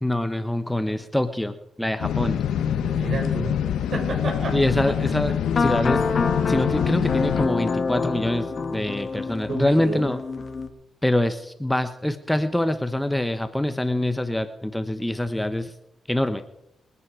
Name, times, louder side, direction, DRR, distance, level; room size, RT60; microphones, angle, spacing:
voice 1, 0.0-2.4 4.5-6.1 6.5-10.2 11.0-15.7 16.1-16.4, left 1 dB, 5° left, 9 dB, 1.0 m, -25 dB
sound 1, 2.0-7.5, left 9 dB, 90° left, 1.1 m, -25 dB
voice 2, 2.8-3.6 3.9-4.6 4.9-5.0 9.5-10.0, right 3 dB, 55° right, 2 dB, 6.1 m, -30 dB
sound 2, 5.4-10.7, left 4 dB, 45° left, 1.7 m, -27 dB
26.0 x 9.7 x 4.9 m, 0.81 s
cardioid pair, 85°, 0 cm